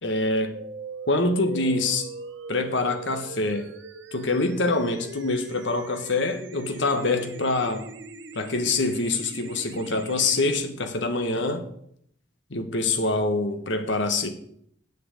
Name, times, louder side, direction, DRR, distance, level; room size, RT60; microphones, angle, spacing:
voice 1, 0.0-0.5 1.0-2.1 2.5-3.7 4.1-7.8 8.3-11.6 12.5-14.3, left 2 dB, 70° left, 1.4 m, -25 dB
sound 1, 0.5-10.5, right 2 dB, 70° right, 1.0 m, -40 dB
8.0 x 6.8 x 8.2 m
head